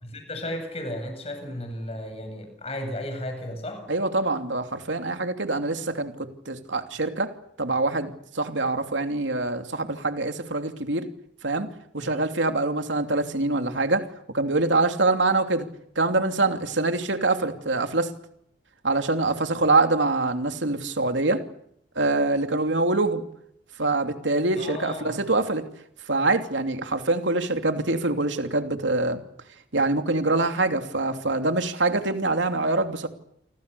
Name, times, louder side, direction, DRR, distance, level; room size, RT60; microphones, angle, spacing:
voice 1, 0.0-3.9 12.0-12.2 24.5-25.2, left 1 dB, 35° left, 6 dB, 7.9 m, -34 dB
voice 2, 3.9-11.1 11.4-11.7 11.9-15.7 15.9-18.1 18.8-21.4 21.9-23.2 23.8-25.6 26.1-29.2 29.7-33.1, right 2 dB, 85° right, 6 dB, 3.0 m, -24 dB
29.5 x 25.0 x 7.0 m, 0.74 s
head